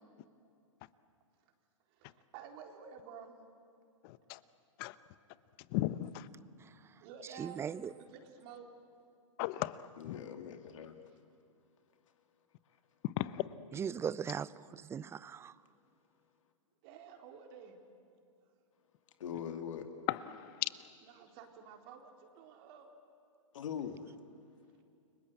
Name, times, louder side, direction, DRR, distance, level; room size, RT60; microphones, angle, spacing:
voice 1, 1.9-3.3 7.0-8.7 16.8-17.8 21.0-22.9, right 7 dB, 45° right, 4 dB, 4.1 m, -52 dB
voice 2, 4.0-4.4 4.8-4.9 5.7-6.3 9.4-10.2 13.2-13.4 20.1-20.7, left 16 dB, 45° left, 16 dB, 1.1 m, -36 dB
voice 3, 7.4-7.9 13.7-15.5, right 7 dB, 15° right, 20 dB, 0.6 m, -38 dB
voice 4, 10.0-11.0 19.2-19.8 23.5-24.1, left 8 dB, 70° left, 6 dB, 2.5 m, -42 dB
30.0 x 23.5 x 8.2 m, 2.5 s
hypercardioid pair, 115°, 17 cm